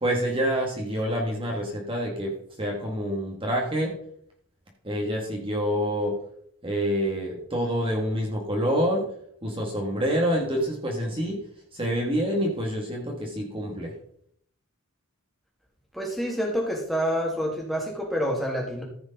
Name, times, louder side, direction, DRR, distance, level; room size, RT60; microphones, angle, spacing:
voice 1, 0.0-4.0 4.8-6.2 6.6-9.1 9.4-11.4 11.7-13.9, equal, 25° right, -1 dB, 1.8 m, -27 dB
voice 2, 15.9-18.8, equal, ahead, -2 dB, 2.3 m, -27 dB
14.0 x 5.2 x 5.3 m, 0.65 s
head